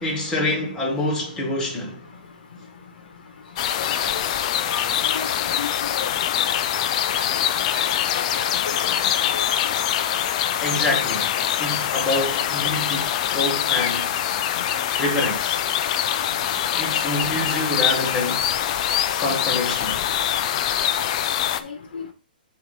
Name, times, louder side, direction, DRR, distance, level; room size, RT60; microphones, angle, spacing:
voice 1, 0.0-2.0 10.6-14.1 15.0-15.6 16.8-18.5 19.2-20.0, left 2 dB, 10° left, 2.0 m, -26 dB
sound 1, 3.6-21.6, left 10 dB, 40° left, 0.6 m, -24 dB
voice 2, 3.8-4.1 4.7-7.3 7.6-8.5 8.8-9.1 21.6-22.1, left 6 dB, 65° left, 1.4 m, -35 dB
6.3 x 3.2 x 5.3 m
hypercardioid pair, 150°, 5 cm